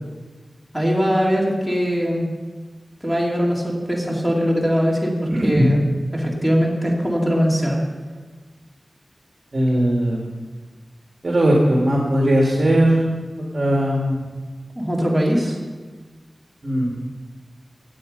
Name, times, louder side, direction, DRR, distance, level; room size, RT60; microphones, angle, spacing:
voice 1, 0.7-2.3 3.0-5.8 6.1-7.8 14.7-15.6, equal, ahead, -3 dB, 3.1 m, -21 dB
voice 2, 5.3-5.7 9.5-10.3 11.2-13.0 13.5-14.3 16.6-16.9, right 1 dB, 50° right, -3 dB, 2.2 m, -18 dB
18.0 x 7.8 x 5.4 m, 1.4 s
wide cardioid pair, 75°, 0 cm